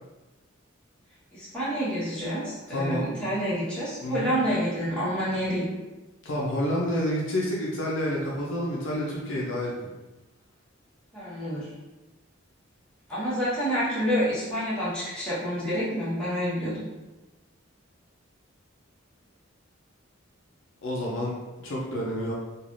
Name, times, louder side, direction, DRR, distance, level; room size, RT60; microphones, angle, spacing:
voice 1, 1.3-5.6 11.1-11.7 13.1-16.9, equal, 5° left, -11 dB, 1.1 m, -28 dB
voice 2, 2.7-3.1 4.0-4.3 6.2-9.7 20.8-22.3, equal, 65° left, -3 dB, 0.5 m, -29 dB
3.2 x 2.4 x 2.5 m, 1.1 s
head